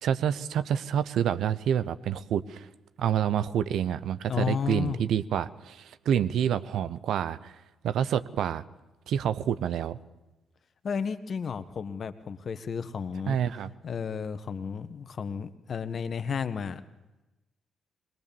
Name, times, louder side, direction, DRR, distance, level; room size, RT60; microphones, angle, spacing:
voice 1, 0.0-2.7 3.0-7.5 7.8-8.6 9.1-10.0 13.3-13.7, right 9 dB, 65° right, 14 dB, 0.8 m, -28 dB
voice 2, 4.3-5.0 10.8-13.4 13.8-16.8, left 6 dB, 55° left, 12 dB, 1.3 m, -32 dB
21.5 x 20.5 x 7.1 m, 1.0 s
hypercardioid pair, 40°, 0 cm